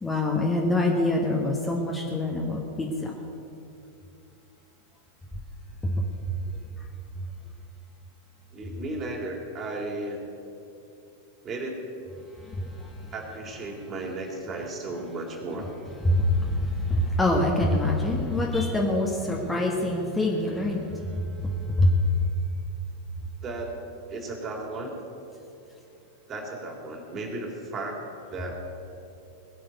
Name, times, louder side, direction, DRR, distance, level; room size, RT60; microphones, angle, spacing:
voice 1, 0.0-3.1 5.8-6.1 12.3-13.1 16.0-22.1, left 1 dB, 10° left, -1 dB, 1.8 m, -25 dB
voice 2, 8.5-10.2 11.4-11.9 13.1-15.7 23.4-23.8 24.1-24.9 26.3-28.5, right 2 dB, 30° right, 0 dB, 3.7 m, -35 dB
20.5 x 7.6 x 9.3 m, 2.8 s
figure-of-eight pair, 90°, 0 cm